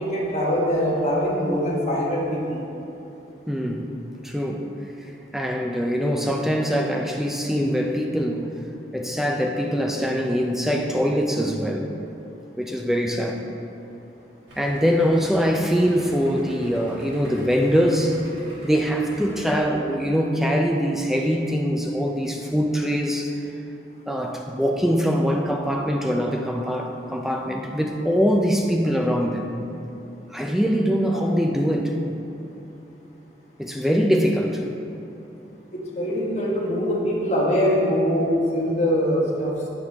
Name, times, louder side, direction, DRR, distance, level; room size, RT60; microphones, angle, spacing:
voice 1, 0.0-2.6 31.0-31.2 35.7-39.5, equal, 40° left, -4 dB, 1.2 m, -23 dB
voice 2, 3.5-3.9 4.2-4.7 5.3-8.5 8.9-11.9 12.6-13.4 14.6-18.2 18.6-23.4 24.1-29.6 30.3-32.0 33.6-34.6, equal, ahead, 1 dB, 0.4 m, -23 dB
Idling, 14.5-19.6, equal, 85° right, 1.7 m, -44 dB
9.2 x 4.9 x 3.5 m, 2.9 s
head